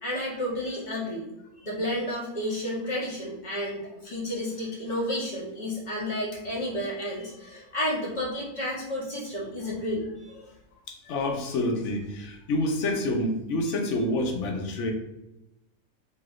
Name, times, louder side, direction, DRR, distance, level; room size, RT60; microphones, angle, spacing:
voice 1, 0.0-1.2 1.6-10.3, left 1 dB, 35° left, -6 dB, 1.0 m, -31 dB
voice 2, 10.9-14.9, left 1 dB, 65° left, 2 dB, 0.8 m, -28 dB
3.1 x 2.7 x 2.4 m, 0.90 s
omnidirectional pair, 1.4 m